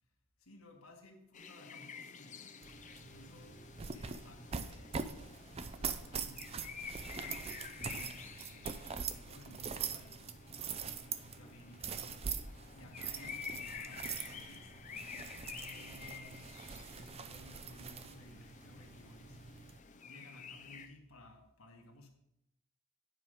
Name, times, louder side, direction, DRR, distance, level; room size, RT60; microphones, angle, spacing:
voice 1, 0.4-2.6 3.0-5.4 6.1-10.5 10.7-12.2 12.7-19.5 20.0-22.1, left 1 dB, 90° left, 1.5 m, -57 dB
sound 1, 1.3-20.9, left 6 dB, 35° left, 0.6 m, -50 dB
sound 2, 2.6-19.8, right 6 dB, 30° right, 0.4 m, -43 dB
9.4 x 5.0 x 5.0 m
head